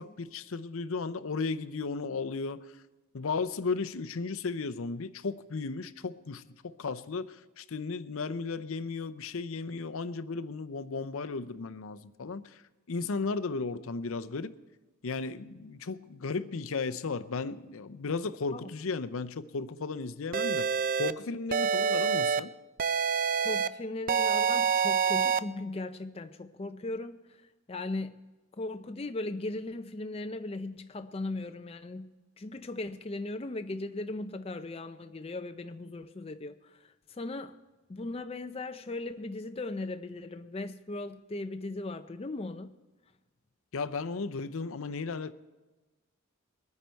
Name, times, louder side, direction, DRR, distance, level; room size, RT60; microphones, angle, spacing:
voice 1, 0.0-2.7 3.1-12.6 12.9-14.5 15.0-20.7 21.0-22.5 43.7-45.3, left 4 dB, 70° left, 0.6 m, -35 dB
sound 1, 20.3-21.1 21.5-22.4 22.8-23.7 24.1-25.4, right 6 dB, 40° right, 0.4 m, -26 dB
voice 2, 23.4-27.4 27.7-28.3 28.6-37.5 37.9-42.8, left 2 dB, 25° left, 0.4 m, -38 dB
22.0 x 9.7 x 4.5 m
head